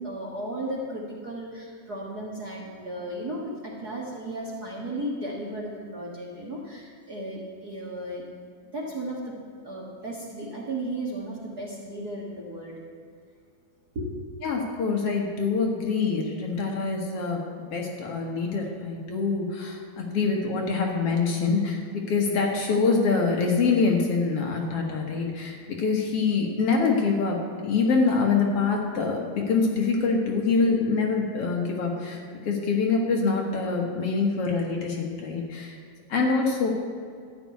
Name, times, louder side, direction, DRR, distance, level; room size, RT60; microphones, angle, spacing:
voice 1, 0.0-8.2 8.7-9.4 9.6-12.7 13.9-14.1, right 1 dB, 40° right, -3 dB, 1.6 m, -35 dB
voice 2, 14.4-17.4 17.7-35.8 36.1-36.7, left 4 dB, 60° left, 0 dB, 2.1 m, -25 dB
13.0 x 6.0 x 9.4 m, 2.2 s
omnidirectional pair, 3.3 m